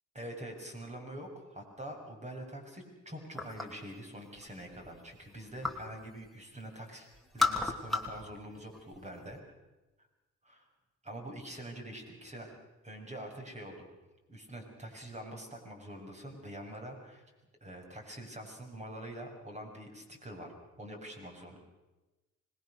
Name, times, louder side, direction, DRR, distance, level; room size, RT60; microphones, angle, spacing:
voice 1, 0.1-7.1 7.3-9.4 10.5-10.6 11.0-12.6 12.8-13.9 14.3-17.2 17.6-20.5 20.8-21.6, right 1 dB, 25° right, 2 dB, 7.1 m, -45 dB
sound 1, 3.3-3.9 4.3-5.9 6.2-6.8 7.1-8.3 8.5-9.4, left 3 dB, ahead, 3.2 m, -34 dB
25.5 x 21.0 x 6.7 m, 1.1 s
cardioid pair, 90°, 30 cm